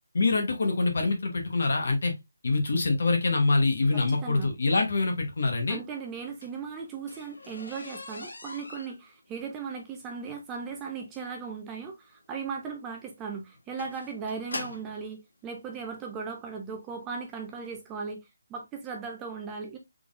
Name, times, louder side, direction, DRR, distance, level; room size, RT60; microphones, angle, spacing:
voice 1, 0.1-2.1 2.4-5.8, left 3 dB, 55° left, 1.0 m, -25 dB
voice 2, 3.9-4.5 5.7-18.2 18.5-19.8, right 5 dB, 10° right, 0.4 m, -37 dB
sound 1, 6.1-15.0 15.9-16.0 16.6-16.8 17.1-17.2 17.5-17.6, left 2 dB, 85° left, 1.6 m, -43 dB
3.6 x 3.6 x 2.4 m
hypercardioid pair, 175°, 0 cm